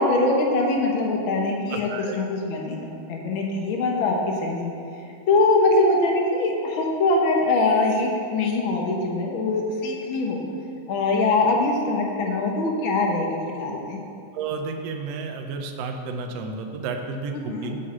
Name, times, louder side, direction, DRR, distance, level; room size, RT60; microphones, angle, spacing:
voice 1, 0.0-4.7 5.3-10.4 10.9-14.0 17.5-17.7, left 2 dB, 60° left, 0 dB, 1.4 m, -23 dB
voice 2, 1.7-2.2 14.3-17.8, right 4 dB, 70° right, 4 dB, 1.7 m, -32 dB
7.6 x 6.5 x 7.3 m, 2.8 s
omnidirectional pair, 3.6 m